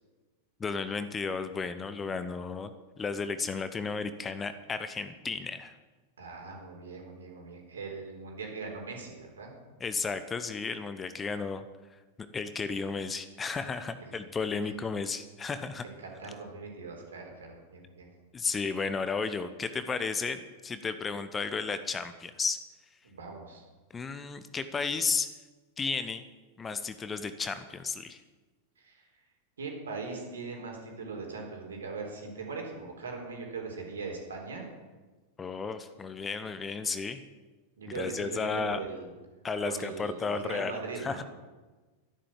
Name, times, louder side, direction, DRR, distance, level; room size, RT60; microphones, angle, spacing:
voice 1, 0.6-2.7 3.0-5.7 9.8-11.6 12.3-15.8 18.3-22.6 23.9-25.3 25.8-26.2 26.6-28.2 35.4-37.2 37.9-38.8 39.4-41.2, left 4 dB, 20° left, 11 dB, 1.0 m, -33 dB
voice 2, 6.2-9.5 14.0-14.2 14.6-14.7 15.8-18.1 23.0-23.6 28.8-29.1 29.6-34.6 37.8-39.1 39.6-41.2, right 4 dB, 70° right, 1 dB, 4.1 m, -40 dB
13.5 x 11.5 x 7.4 m, 1.3 s
figure-of-eight pair, 90°, 0 cm